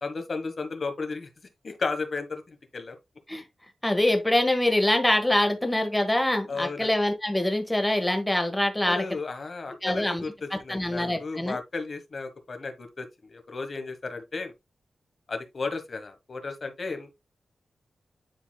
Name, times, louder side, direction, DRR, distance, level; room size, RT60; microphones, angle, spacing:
voice 1, 0.0-1.3 1.6-2.9 6.5-6.9 8.9-14.5 15.3-17.1, left 4 dB, 45° left, 1.4 m, -34 dB
voice 2, 3.8-9.0 9.8-10.2 10.5-11.6, left 1 dB, 10° left, 1.5 m, -24 dB
10.5 x 4.1 x 2.3 m
wide cardioid pair, 145°, 0 cm